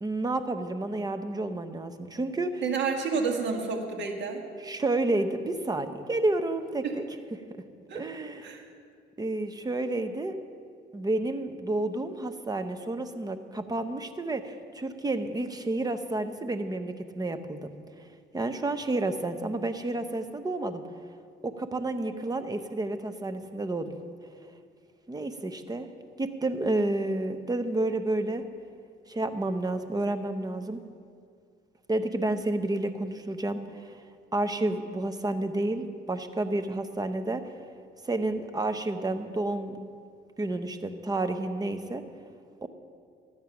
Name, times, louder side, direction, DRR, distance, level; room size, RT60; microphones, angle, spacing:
voice 1, 0.0-2.6 4.6-7.1 7.9-8.6 9.2-10.4 10.9-17.7 18.3-20.8 21.4-23.9 25.1-25.9 26.2-28.4 29.1-30.8 31.9-33.9 34.3-37.4 38.0-39.9 40.4-42.0 42.6-42.7, right 2 dB, 20° right, 9 dB, 0.8 m, -30 dB
voice 2, 2.6-4.4 6.8-6.9 7.9-8.0 8.4-8.6, right 5 dB, 65° right, 2 dB, 1.8 m, -29 dB
13.0 x 8.9 x 5.9 m, 2.2 s
cardioid pair, 90°, 20 cm